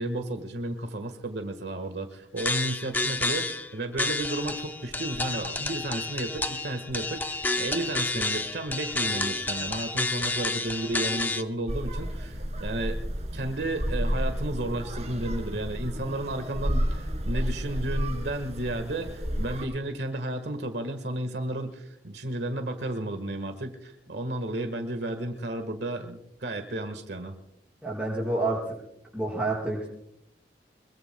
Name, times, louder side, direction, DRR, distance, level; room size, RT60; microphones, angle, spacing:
voice 1, 0.0-13.0 13.3-27.4, right 1 dB, 70° right, 7 dB, 1.5 m, -33 dB
sound 1, 2.4-3.7 4.0-11.4, left 2 dB, 10° left, 0.5 m, -30 dB
sound 2, 11.7-19.6, equal, 40° right, 2.7 m, -31 dB
voice 2, 27.8-28.8 29.1-29.9, right 2 dB, 5° right, -2 dB, 5.4 m, -28 dB
24.5 x 22.5 x 2.2 m, 0.79 s
head